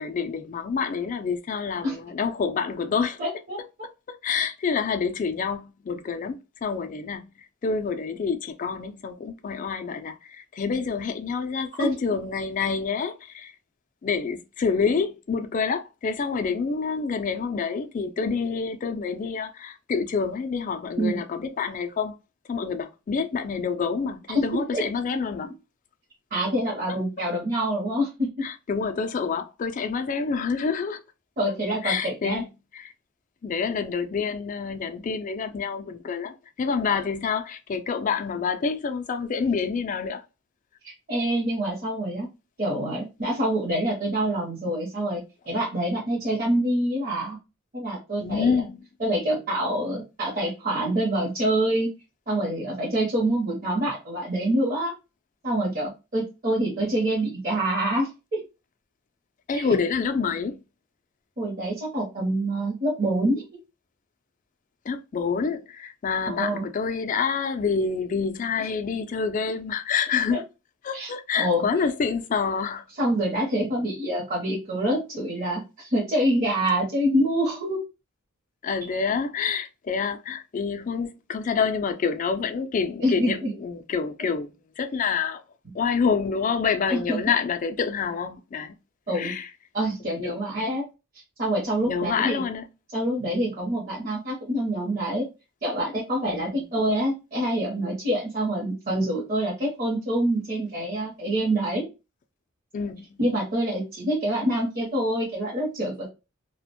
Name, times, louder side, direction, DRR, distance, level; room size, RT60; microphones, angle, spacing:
voice 1, 0.0-3.2 4.1-7.3 7.6-13.5 14.0-22.2 22.5-25.5 26.9-27.0 28.4-31.0 31.8-32.5 32.7-32.9 33.4-40.2 48.2-48.8 59.5-60.6 64.9-70.4 70.8-72.8 78.6-85.4 85.7-88.7 89.1-89.5 90.1-90.4 91.8-92.7 96.3-96.7 102.7-103.1, left 5 dB, 40° left, 0.3 m, -27 dB
voice 2, 3.2-3.6 11.8-11.9 21.0-21.2 24.3-24.9 26.3-28.5 31.4-32.4 40.8-42.3 42.6-47.4 47.7-48.6 49.0-51.9 52.3-54.9 55.4-58.4 59.5-59.7 61.4-63.4 66.3-66.7 70.3-70.4 70.9-71.6 73.0-77.8 83.0-83.5 86.9-87.2 89.1-89.3 89.7-90.9 91.4-92.4 92.9-95.2 95.6-101.9 103.2-106.1, right 1 dB, 40° right, 0.7 m, -26 dB
2.4 x 2.1 x 2.8 m
head